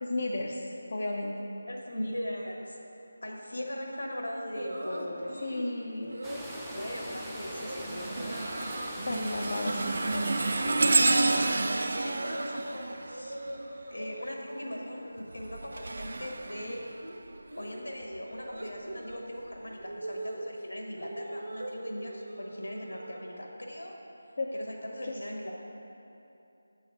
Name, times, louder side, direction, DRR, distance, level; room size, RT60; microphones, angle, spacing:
voice 1, 0.0-1.6 5.4-6.2 9.1-10.3 24.4-24.5 25.0-25.2, left 2 dB, 50° left, -1 dB, 0.5 m, -33 dB
voice 2, 1.7-2.8 3.2-5.3 6.7-8.5 10.7-11.3 11.9-13.4 13.9-16.8 17.5-24.0 24.5-25.5, left 1 dB, 85° left, 0 dB, 1.2 m, -39 dB
sound 1, 4.5-5.7 6.1-6.5 6.9-7.2 7.5-7.8 8.1-8.9 9.3-12.8 13.0-14.3 14.7-15.1 15.3-23.5, right 1 dB, 75° right, 0.8 m, -42 dB
sound 2, 6.2-11.5, equal, 5° right, 0.5 m, -41 dB
sound 3, 6.2-6.6 7.1-13.9 15.2-17.4 18.0-18.2 19.1-19.2, right 3 dB, 60° right, 0.3 m, -30 dB
7.4 x 4.0 x 5.6 m, 2.8 s
figure-of-eight pair, 165°, 0 cm